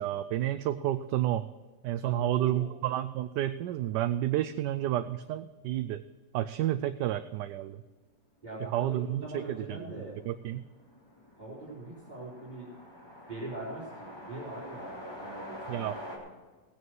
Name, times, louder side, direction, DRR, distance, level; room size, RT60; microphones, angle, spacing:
voice 1, 0.0-1.5 1.8-6.0 6.3-7.8 8.6-9.8 10.2-10.7 15.7-16.0, right 13 dB, 80° right, 10 dB, 1.2 m, -30 dB
voice 2, 2.0-2.7 8.4-10.2 11.4-12.7 13.3-16.2, right 2 dB, 25° right, -8 dB, 3.7 m, -42 dB
sound 1, 9.6-16.2, left 1 dB, 15° left, 3.0 m, -46 dB
16.5 x 9.5 x 4.5 m, 1.3 s
omnidirectional pair, 1.9 m